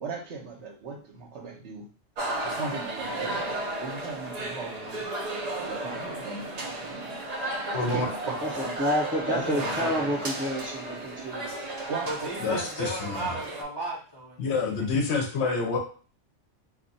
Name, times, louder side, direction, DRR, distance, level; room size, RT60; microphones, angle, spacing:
voice 1, 0.0-1.9 2.4-5.0 5.6-7.2 7.5-8.5 9.3-10.2 11.9-12.6, right 4 dB, 70° right, 0 dB, 1.0 m, -37 dB
sound 1, 2.2-13.6, right 1 dB, 55° right, 0.4 m, -34 dB
voice 2, 7.7-8.1 12.4-13.3 14.4-15.8, left 4 dB, 70° left, 3 dB, 0.8 m, -27 dB
voice 3, 8.6-11.5, equal, 10° right, -5 dB, 0.6 m, -29 dB
voice 4, 9.4-10.0 12.1-14.9, right 1 dB, 25° left, -5 dB, 0.6 m, -35 dB
2.4 x 2.2 x 3.9 m, 0.39 s
omnidirectional pair, 1.3 m